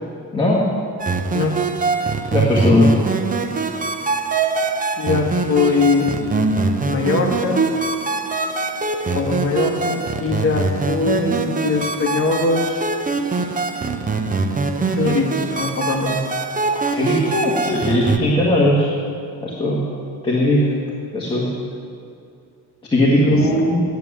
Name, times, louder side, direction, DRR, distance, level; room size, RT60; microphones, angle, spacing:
voice 1, 0.3-0.7 2.3-3.0 16.7-18.9 19.4-19.8 20.2-20.7 21.1-21.5 22.9-23.8, left 1 dB, 15° left, -6 dB, 1.6 m, -18 dB
sound 1, 1.0-18.2, right 4 dB, 20° right, 0.5 m, -23 dB
voice 2, 5.0-6.2 6.8-7.7 9.0-12.9 14.8-16.2 23.1-23.4, left 4 dB, 35° left, 1 dB, 1.4 m, -21 dB
9.3 x 8.9 x 9.7 m, 2.3 s
cardioid pair, 175°, 38 cm